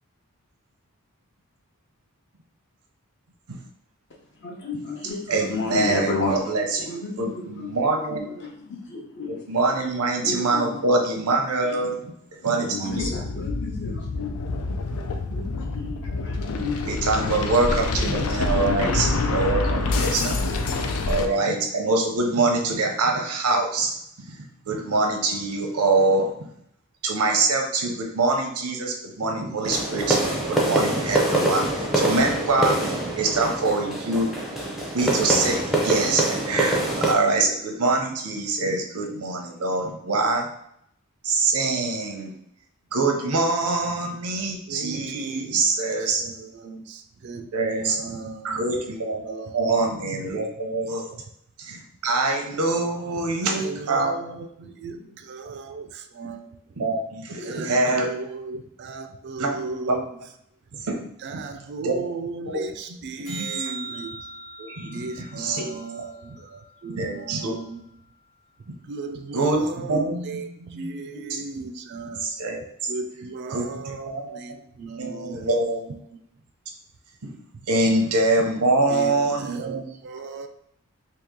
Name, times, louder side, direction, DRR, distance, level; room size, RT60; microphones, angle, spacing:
voice 1, 4.4-7.8 8.1-9.5 10.2-10.8 11.7-11.9 12.6-14.3 15.3-19.8, left 3 dB, 55° left, -1 dB, 0.8 m, -32 dB
voice 2, 5.3-6.9 7.2-8.2 9.3-12.1 12.4-13.1 16.9-20.4 21.1-24.4 24.6-26.5 27.0-32.8 33.2-34.3 34.9-40.5 41.2-42.3 42.9-46.2 47.5-48.0 48.4-51.1 51.6-54.4 56.8-58.1 59.4-59.6 59.9-60.0 60.8-61.0 61.8-62.1 62.5-62.6 63.3-63.5 64.6-65.1 65.3-65.7 67.0-67.5 69.3-70.9 71.1-71.4 72.2-72.6 73.5-73.7 74.1-74.4 75.0-75.8 77.7-79.9, right 3 dB, 90° right, 3 dB, 0.7 m, -24 dB
sound 1, 12.9-21.3, left 3 dB, 80° left, 0.4 m, -26 dB
sound 2, 29.6-37.1, right 1 dB, ahead, 0.6 m, -25 dB
voice 3, 44.7-49.8 53.4-56.6 57.4-60.2 60.7-60.8 61.2-64.3 64.9-67.8 68.8-72.4 72.9-76.2 77.5-77.7 78.9-80.5, right 3 dB, 50° right, 7 dB, 0.3 m, -36 dB
sound 3, 63.3-67.7 74.3-74.4, right 4 dB, 35° left, 1.2 m, -40 dB
2.9 x 2.8 x 3.6 m, 0.72 s
head